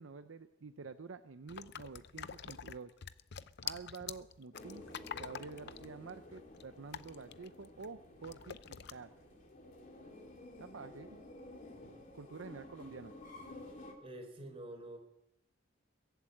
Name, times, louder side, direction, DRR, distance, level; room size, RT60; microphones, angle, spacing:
voice 1, 0.0-2.9 3.6-4.8 5.1-9.1 10.6-11.2 12.1-13.1, right 4 dB, 75° right, 9 dB, 0.6 m, -49 dB
sound 1, 1.5-7.9 8.2-8.9, left 8 dB, 55° left, 0.6 m, -46 dB
sound 2, 4.5-13.9, left 2 dB, 40° left, 2.9 m, -53 dB
voice 2, 14.0-15.0, right 1 dB, 30° right, 4 dB, 3.8 m, -47 dB
22.5 x 8.1 x 7.7 m, 0.81 s
head